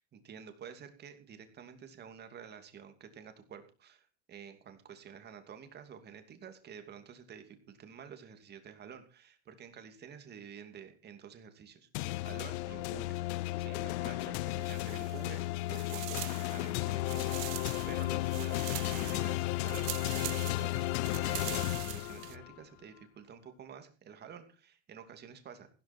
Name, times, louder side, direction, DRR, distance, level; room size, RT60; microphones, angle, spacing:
voice 1, 0.0-13.2 13.6-25.7, right 7 dB, 25° right, 7 dB, 2.8 m, -50 dB
sound 1, 11.9-22.5, left 18 dB, 60° left, 0.7 m, -34 dB
sound 2, 14.5-15.4 15.7-22.4, right 24 dB, 60° right, 0.8 m, -44 dB
15.5 x 13.0 x 4.5 m, 0.36 s
supercardioid pair, 150°, 38 cm